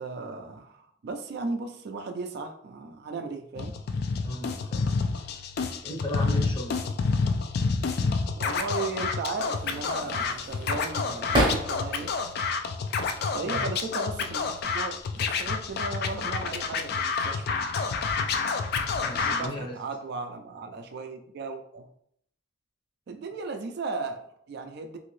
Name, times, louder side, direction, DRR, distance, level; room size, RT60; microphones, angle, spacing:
voice 1, 0.0-3.8 8.4-12.1 13.3-17.5 19.2-21.9 23.1-25.0, right 3 dB, 55° right, 5 dB, 0.4 m, -36 dB
Scratching (performance technique), 3.6-19.5, left 4 dB, 55° left, 0.3 m, -29 dB
voice 2, 4.2-4.9 5.1-5.5 5.8-6.8 13.4-13.7 19.0-19.8, equal, 25° left, -1 dB, 0.7 m, -36 dB
sound 1, 9.6-12.1 12.5-13.4 14.3-14.6 15.0-15.8, equal, 25° right, 0.7 m, -31 dB
2.8 x 2.6 x 3.1 m, 0.68 s
head